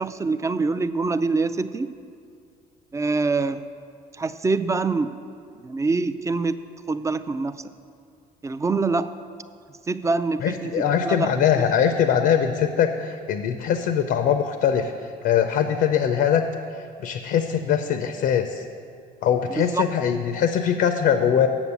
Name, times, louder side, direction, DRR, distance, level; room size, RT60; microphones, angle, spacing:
voice 1, 0.0-1.9 2.9-3.6 4.1-5.1 5.5-6.6 6.9-7.7 8.4-9.1 9.9-11.3 11.6-11.7 19.5-19.8, right 3 dB, 20° right, 12 dB, 0.4 m, -25 dB
voice 2, 10.4-14.9 15.2-16.4 17.0-18.6 19.2-21.5, left 8 dB, 75° left, 7 dB, 0.6 m, -22 dB
7.2 x 7.1 x 8.2 m, 2.3 s
cardioid pair, 110°, 17 cm